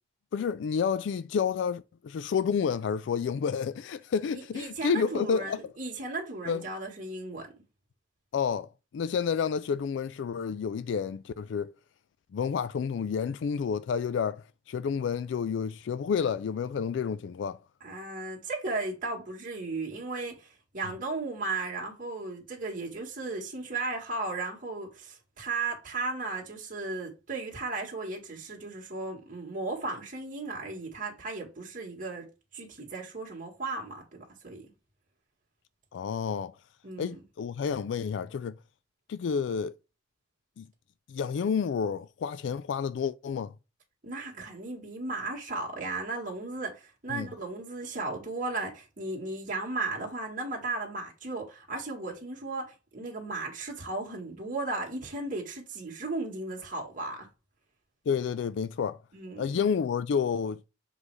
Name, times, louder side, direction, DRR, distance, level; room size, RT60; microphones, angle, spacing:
voice 1, 0.3-5.7 6.5-6.6 8.3-8.7 8.9-11.7 12.3-17.6 35.9-36.6 37.0-38.5 39.1-39.7 40.6-40.7 41.1-43.5 47.1-47.3 58.1-59.0 59.4-60.7, left 6 dB, 80° left, 0.3 m, -30 dB
voice 2, 4.3-7.5 17.8-32.3 32.5-34.7 36.8-37.2 44.0-57.3 59.1-59.6, right 3 dB, 50° right, 1.8 m, -35 dB
7.5 x 3.2 x 4.8 m
head